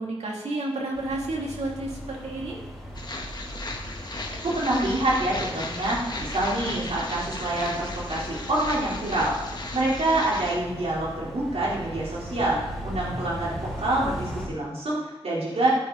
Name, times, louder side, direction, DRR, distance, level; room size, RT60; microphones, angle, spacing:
voice 1, 0.0-2.6, right 2 dB, 90° right, -2 dB, 3.2 m, -31 dB
sound 1, 0.9-14.5, equal, ahead, 4.9 m, -38 dB
sound 2, 2.9-10.6, left 2 dB, 40° left, 1.7 m, -36 dB
voice 2, 4.4-9.4 9.7-15.7, right 1 dB, 70° right, -6 dB, 4.2 m, -26 dB
17.0 x 9.1 x 4.2 m, 1.1 s
wide cardioid pair, 80°, 11 cm